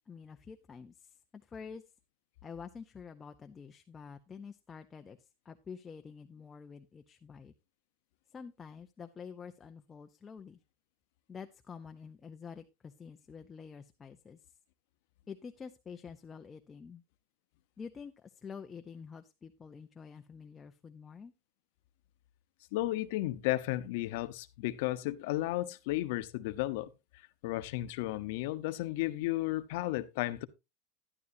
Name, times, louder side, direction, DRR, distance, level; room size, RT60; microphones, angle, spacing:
voice 1, 0.1-1.8 2.4-7.5 8.3-10.6 11.3-14.4 15.3-17.0 17.8-21.3, left 6 dB, 15° left, 0.5 m, -48 dB
voice 2, 22.7-26.9 27.4-30.5, left 17 dB, 60° left, 0.8 m, -33 dB
12.0 x 11.0 x 2.6 m
supercardioid pair, 165°, 0 cm